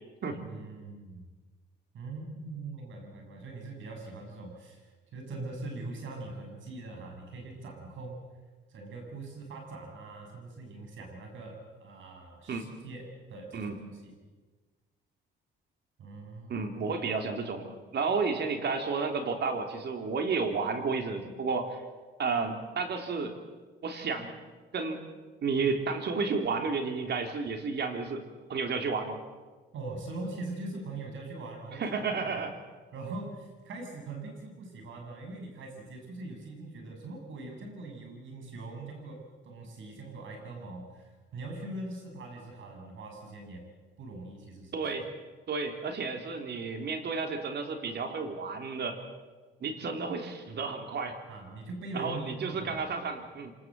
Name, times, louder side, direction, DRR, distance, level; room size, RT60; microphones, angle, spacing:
voice 1, 0.5-1.3 1.9-8.3 8.7-13.7 14.0-14.1 16.0-16.7 29.7-31.8 32.2-32.4 32.9-43.7 44.0-44.9 51.3-52.8, right 2 dB, 75° right, 2 dB, 7.5 m, -42 dB
voice 2, 16.5-21.8 22.2-23.3 23.8-24.3 24.7-25.0 25.4-28.2 28.5-29.2 31.7-32.6 44.7-45.1 45.5-49.0 49.6-51.2 51.9-53.5, right 4 dB, 60° right, 5 dB, 3.5 m, -32 dB
27.0 x 19.5 x 7.8 m, 1.4 s
cardioid pair, 90°, 20 cm